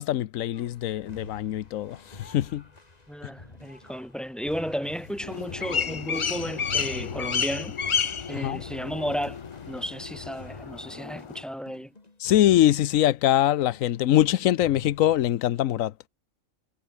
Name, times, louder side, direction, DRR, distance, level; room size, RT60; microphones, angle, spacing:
voice 1, 0.0-2.6 8.4-8.6 12.2-15.9, left 13 dB, 85° left, 1.1 m, -23 dB
sound 1, 0.5-14.3 14.6-15.5, left 3 dB, 30° left, 2.2 m, -49 dB
voice 2, 3.1-7.8 8.3-9.4 9.7-11.9, equal, ahead, 2.1 m, -33 dB
sound 2, 4.8-10.3, left 7 dB, 70° left, 1.6 m, -42 dB
sound 3, 5.2-11.4, left 6 dB, 50° left, 0.3 m, -31 dB
omnidirectional pair, 1.4 m